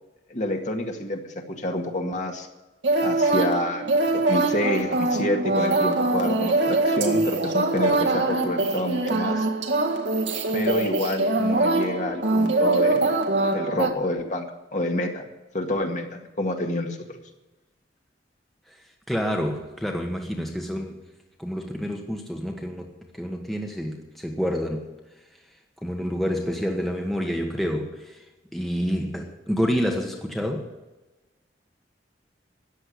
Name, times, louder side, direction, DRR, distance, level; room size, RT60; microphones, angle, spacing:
voice 1, 0.3-2.5 3.0-4.0 4.3-9.5 10.5-13.1 13.5-14.5 14.7-15.3 15.5-17.2, left 1 dB, 40° left, 3 dB, 1.9 m, -28 dB
sound 1, 2.8-13.9, right 2 dB, 75° right, 1.8 m, -23 dB
voice 2, 19.1-21.0 21.4-24.9 25.8-28.2 28.5-30.7, equal, ahead, 1 dB, 1.3 m, -28 dB
14.0 x 9.8 x 8.5 m, 1.1 s
head